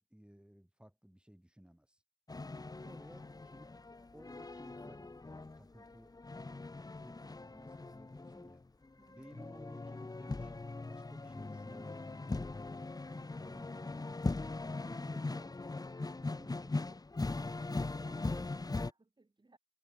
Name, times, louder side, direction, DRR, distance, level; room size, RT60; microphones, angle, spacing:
voice 1, 0.0-2.0 2.8-3.7 4.1-6.3 6.9-8.6 9.1-12.3 13.0-14.1 14.6-15.5 16.2-17.0 18.1-18.4, equal, 10° right, 4.7 m, -57 dB
sound 1, 2.3-18.9, left 3 dB, 50° left, 0.7 m, -40 dB
voice 2, 2.7-3.3 9.0-9.4 16.2-16.5 17.4-19.6, right 3 dB, 70° right, 3.5 m, -63 dB
wide cardioid pair, 50°, 8 cm